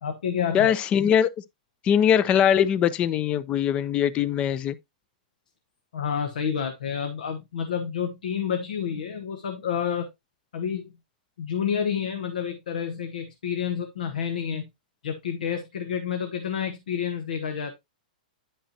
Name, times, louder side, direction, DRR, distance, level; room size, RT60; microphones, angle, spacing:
voice 1, 0.0-0.7 5.9-10.1 10.5-10.9 11.4-14.7 15.0-17.7, left 7 dB, 85° left, 1.1 m, -29 dB
voice 2, 0.5-1.3 1.8-4.8, left 9 dB, 25° left, 0.5 m, -21 dB
10.0 x 5.5 x 2.8 m
hypercardioid pair, 145°, 5 cm